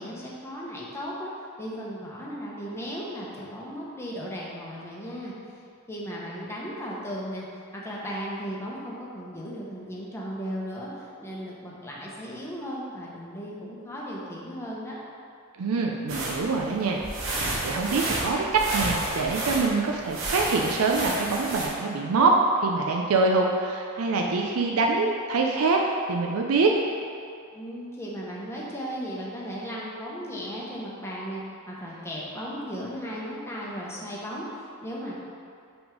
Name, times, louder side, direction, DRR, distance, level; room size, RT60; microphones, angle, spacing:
voice 1, 0.0-1.3 1.6-5.3 5.9-7.5 7.7-15.0 27.5-35.1, equal, 10° left, -5 dB, 1.0 m, -36 dB
voice 2, 15.6-17.0 17.6-25.8 26.1-26.7, right 3 dB, 85° right, 1 dB, 0.5 m, -24 dB
sound 1, 16.1-21.7, right 2 dB, 65° right, 1.1 m, -31 dB
5.9 x 3.6 x 5.1 m, 2.4 s
head